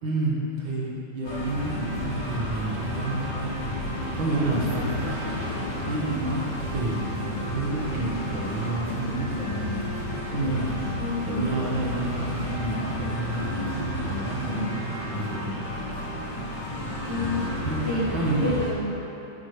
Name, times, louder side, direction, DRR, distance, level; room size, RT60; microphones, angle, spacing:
voice 1, 0.0-3.5 4.2-4.9 5.8-10.7 11.3-15.5 17.6-17.8 18.1-18.4, right 2 dB, 90° right, -5 dB, 2.2 m, -30 dB
sound 1, 1.2-18.7, left 1 dB, 70° left, 2.3 m, -31 dB
voice 2, 11.0-11.6 17.0-19.0, left 1 dB, 65° right, -8 dB, 2.0 m, -30 dB
10.0 x 8.4 x 3.4 m, 2.9 s
omnidirectional pair, 2.0 m